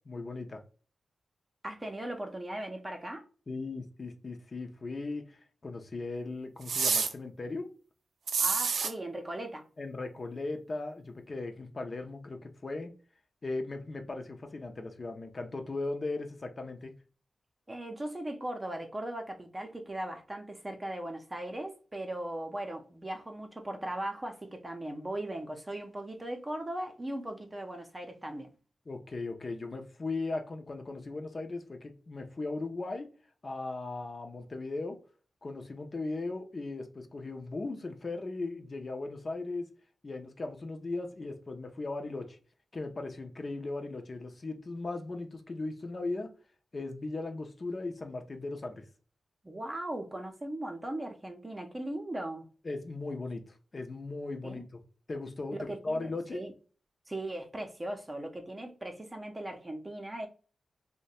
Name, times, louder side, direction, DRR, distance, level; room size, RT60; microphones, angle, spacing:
voice 1, 0.0-0.6 3.5-7.7 9.8-12.9 13.4-16.9 28.9-33.1 33.4-35.0 35.4-39.7 40.0-42.4 42.7-46.3 46.7-48.8 52.6-54.8 55.1-55.6 55.8-56.4, left 3 dB, 40° left, 0.6 m, -38 dB
voice 2, 1.6-3.3 8.4-9.7 17.7-28.5 49.4-52.5 54.4-54.6 55.5-56.5 57.1-60.3, right 1 dB, 20° right, 0.7 m, -38 dB
sound 1, 6.7-7.1 8.3-8.9, right 5 dB, 90° right, 0.4 m, -28 dB
2.8 x 2.2 x 4.1 m
wide cardioid pair, 90°, 0 cm